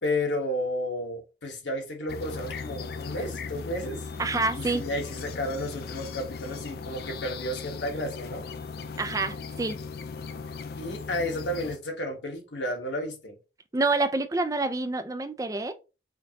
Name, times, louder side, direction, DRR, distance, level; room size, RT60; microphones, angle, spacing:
voice 1, 0.0-4.1 4.5-8.5 10.8-13.3, left 1 dB, 75° left, 1.3 m, -32 dB
sound 1, 2.1-11.8, left 5 dB, 55° left, 0.4 m, -38 dB
voice 2, 4.2-4.8 9.0-9.8 13.7-15.7, right 3 dB, 20° right, 0.4 m, -27 dB
5.0 x 2.7 x 2.8 m
head